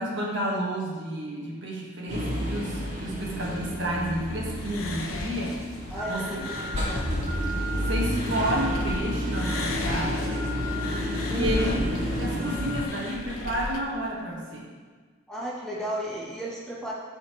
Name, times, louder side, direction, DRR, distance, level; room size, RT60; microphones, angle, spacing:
voice 1, 0.0-5.6 6.1-6.4 7.7-10.4 11.3-11.8 12.2-14.7, right 1 dB, 55° right, -3 dB, 1.5 m, -31 dB
sound 1, 2.1-12.9, equal, 30° right, 2.1 m, -30 dB
voice 2, 3.1-3.9 5.9-6.6 6.9-7.0 11.3-11.9 15.3-16.9, equal, 5° left, -6 dB, 1.0 m, -34 dB
sound 2, 4.6-9.0 9.3-13.8, left 2 dB, 80° left, 0.8 m, -35 dB
12.5 x 4.4 x 3.1 m, 1.5 s
head